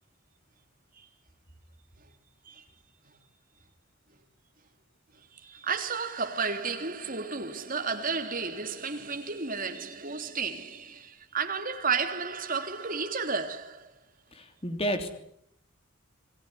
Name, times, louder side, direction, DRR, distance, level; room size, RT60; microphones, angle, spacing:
voice 1, 5.3-13.9, right 5 dB, 40° right, 3.3 m, -32 dB
voice 2, 14.3-15.1, equal, 30° left, 3.2 m, -31 dB
27.5 x 18.5 x 10.0 m
head